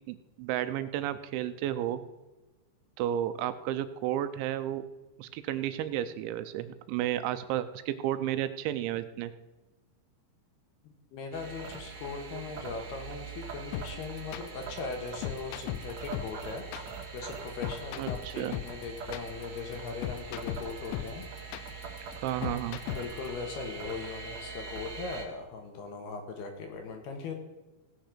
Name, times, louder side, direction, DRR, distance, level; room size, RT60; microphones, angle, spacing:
voice 1, 0.1-2.0 3.0-4.8 5.2-9.3 18.0-18.5 22.2-22.8, right 12 dB, 80° right, 12 dB, 2.9 m, -32 dB
voice 2, 11.1-21.3 21.6-22.0 22.4-27.3, left 4 dB, 65° left, 4 dB, 3.1 m, -40 dB
sound 1, 11.3-25.3, right 5 dB, 60° right, 1.8 m, -43 dB
sound 2, 13.7-23.3, left 14 dB, 80° left, 2.8 m, -38 dB
17.0 x 6.5 x 6.6 m, 1.1 s
omnidirectional pair, 5.5 m